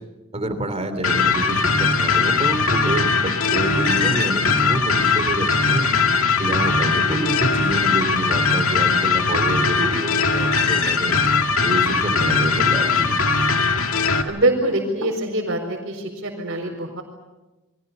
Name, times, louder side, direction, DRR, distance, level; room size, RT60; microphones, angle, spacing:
voice 1, 0.3-5.9 6.4-11.2 11.6-13.1, right 1 dB, 30° right, 8 dB, 3.2 m, -27 dB
sound 1, 1.0-14.2, left 4 dB, 75° left, 2.1 m, -20 dB
sound 2, 9.1-10.1 11.5-12.3 14.4-15.3, right 1 dB, 85° right, 4.1 m, -36 dB
voice 2, 14.2-17.0, right 1 dB, 55° right, -3 dB, 4.6 m, -24 dB
30.0 x 23.0 x 6.8 m, 1.1 s
head